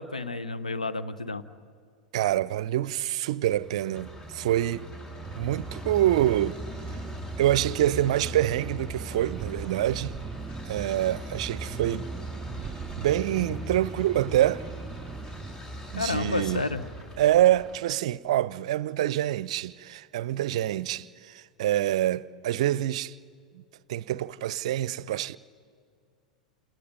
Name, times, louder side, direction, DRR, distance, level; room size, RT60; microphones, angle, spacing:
voice 1, 0.0-1.4 16.0-16.8, left 3 dB, 85° left, 0.9 m, -30 dB
voice 2, 2.1-4.9 5.4-6.6 6.9-7.0 7.4-10.2 10.7-12.1 13.0-14.7 15.9-16.6 17.2-23.2 23.5-23.6 23.9-25.4, right 13 dB, 60° right, 0.5 m, -26 dB
sound 1, 3.4-17.8, right 1 dB, 20° left, 3.9 m, -40 dB
sound 2, 5.2-15.6, right 4 dB, 10° right, 2.1 m, -40 dB
28.5 x 28.0 x 5.4 m
figure-of-eight pair, 85°, 4 cm